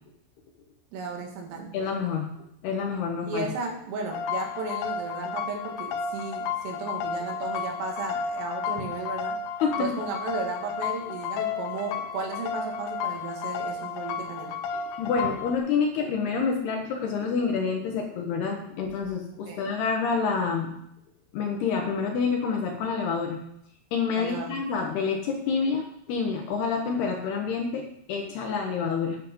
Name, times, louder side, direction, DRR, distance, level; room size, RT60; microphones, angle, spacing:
voice 1, 0.9-1.7 3.2-9.4 9.8-14.6 19.5-19.8 24.2-24.6, right 4 dB, 85° right, 2 dB, 4.6 m, -34 dB
voice 2, 1.7-2.3 2.6-3.5 9.6-9.9 15.0-20.8 21.3-23.4 23.9-29.2, left 5 dB, 70° left, 2 dB, 2.6 m, -28 dB
sound 1, 4.1-15.6, left 6 dB, 85° left, 3.1 m, -32 dB
10.5 x 8.3 x 5.3 m, 0.73 s
omnidirectional pair, 5.7 m